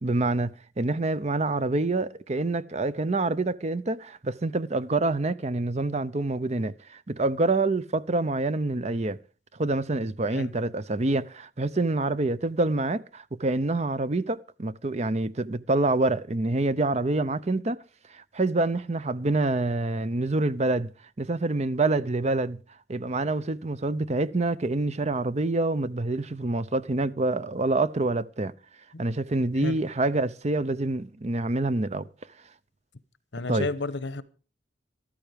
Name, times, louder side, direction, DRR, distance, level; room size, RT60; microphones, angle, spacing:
voice 1, 0.0-9.2 9.6-17.8 18.1-20.9 21.2-22.6 22.9-28.5 29.0-32.1 33.5-33.7, right 2 dB, 35° right, 0.7 m, -26 dB
voice 2, 33.3-34.2, left 3 dB, 70° left, 1.0 m, -32 dB
14.0 x 13.0 x 5.1 m
head